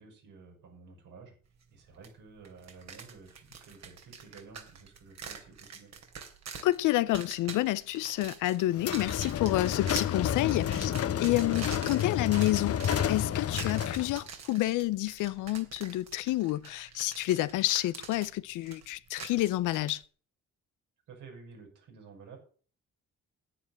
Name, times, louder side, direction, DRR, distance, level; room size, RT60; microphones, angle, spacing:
voice 1, 0.0-1.3 1.7-5.9 11.5-11.7 21.1-22.4, right 4 dB, 85° right, 6.8 m, -52 dB
sound 1, 2.0-2.1 2.4-20.0, right 6 dB, 60° right, 3.0 m, -45 dB
voice 2, 6.6-10.9 11.2-12.8 13.1-20.0, left 16 dB, 90° left, 0.6 m, -29 dB
sound 2, 8.8-14.2, left 9 dB, 50° left, 0.8 m, -30 dB
10.0 x 9.2 x 7.5 m
cardioid pair, 90°, 30 cm